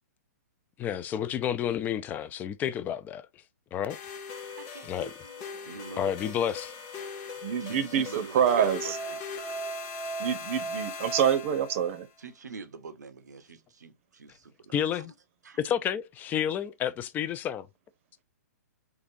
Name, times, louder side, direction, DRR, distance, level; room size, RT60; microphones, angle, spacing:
voice 1, 0.8-3.3 3.7-4.0 4.8-5.1 6.0-6.7 14.7-15.1 15.6-17.7, left 9 dB, 20° left, 0.3 m, -30 dB
sound 1, 3.9-12.0, left 1 dB, 35° left, 0.8 m, -38 dB
voice 2, 4.6-6.5 7.0-7.3 7.6-9.2 12.2-15.1 15.4-15.6, right 5 dB, 85° right, 0.7 m, -44 dB
voice 3, 7.4-9.0 10.2-12.1, right 8 dB, 50° right, 0.7 m, -26 dB
3.8 x 2.4 x 2.6 m
hypercardioid pair, 130°, 9 cm